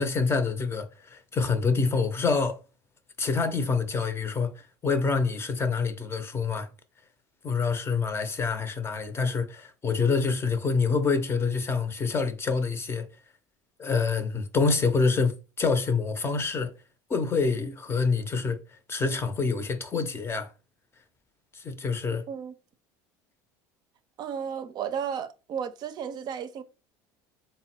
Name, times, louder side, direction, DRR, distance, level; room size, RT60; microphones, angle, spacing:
voice 1, 0.0-2.6 3.2-4.5 4.8-6.7 7.4-13.1 13.8-16.7 17.1-18.6 18.9-20.5 21.5-22.2, left 4 dB, 25° left, 0.6 m, -26 dB
voice 2, 24.2-26.6, right 7 dB, 50° right, 0.5 m, -33 dB
3.5 x 2.1 x 4.3 m
supercardioid pair, 100°, 9 cm